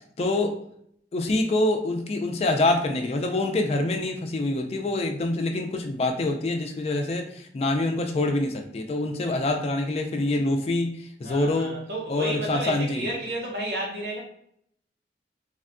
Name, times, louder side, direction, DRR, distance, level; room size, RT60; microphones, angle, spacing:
voice 1, 0.2-0.6 1.1-11.8 12.1-13.1, left 2 dB, 35° left, 4 dB, 0.3 m, -25 dB
voice 2, 11.2-14.2, right 1 dB, 65° right, -2 dB, 0.9 m, -32 dB
3.4 x 2.2 x 2.4 m, 0.70 s
head